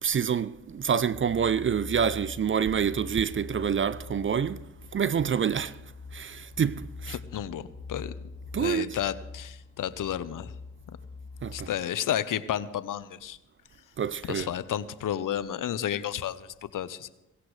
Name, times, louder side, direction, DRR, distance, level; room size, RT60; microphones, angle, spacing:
voice 1, 0.0-4.7 4.9-5.8 6.1-7.2 8.5-9.0 11.4-11.7 14.0-14.5, right 7 dB, 35° right, 0.6 m, -27 dB
sound 1, 1.1-11.7, left 4 dB, 20° left, 0.6 m, -44 dB
voice 2, 7.1-8.1 8.6-10.5 11.5-13.4 14.3-17.1, left 10 dB, 60° left, 0.8 m, -32 dB
17.0 x 16.5 x 3.3 m
supercardioid pair, 50°, 36 cm